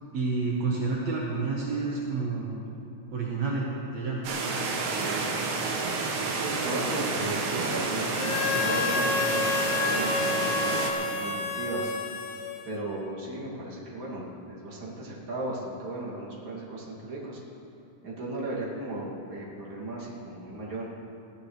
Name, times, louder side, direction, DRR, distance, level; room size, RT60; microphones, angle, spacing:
voice 1, 0.1-2.6 3.1-4.2, right 4 dB, 60° right, -4 dB, 1.8 m, -29 dB
sound 1, 4.2-10.9, right 4 dB, 80° right, 3.7 m, -30 dB
voice 2, 6.4-11.9 12.6-17.4 18.0-20.9, right 2 dB, 35° right, -5 dB, 2.5 m, -36 dB
Harmonica, 8.1-13.0, left 4 dB, 80° left, 2.0 m, -29 dB
21.5 x 15.0 x 3.3 m, 2.9 s
omnidirectional pair, 5.0 m